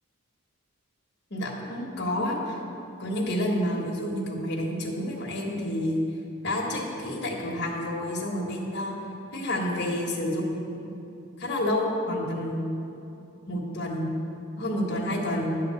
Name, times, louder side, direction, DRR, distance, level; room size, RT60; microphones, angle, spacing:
voice 1, 1.3-2.6 3.0-6.0 6.4-9.0 9.3-10.9 11.4-12.6 13.5-14.1 14.6-15.5, left 1 dB, 50° left, -1 dB, 1.2 m, -29 dB
10.0 x 3.7 x 6.8 m, 2.8 s
head